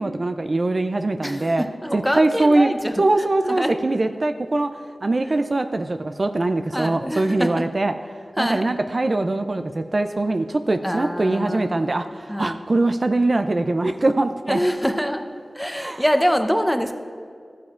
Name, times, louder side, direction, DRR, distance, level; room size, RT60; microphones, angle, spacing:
voice 1, 0.0-1.6 1.9-2.7 3.0-4.7 5.0-7.9 8.4-14.6 15.8-16.0, right 2 dB, 50° right, 8 dB, 0.4 m, -22 dB
voice 2, 1.2-3.8 6.7-7.6 8.4-8.7 10.8-12.6 14.5-15.2 15.5-17.0, equal, ahead, 6 dB, 0.7 m, -25 dB
13.5 x 9.5 x 2.4 m, 2.2 s
wide cardioid pair, 50°, 0 cm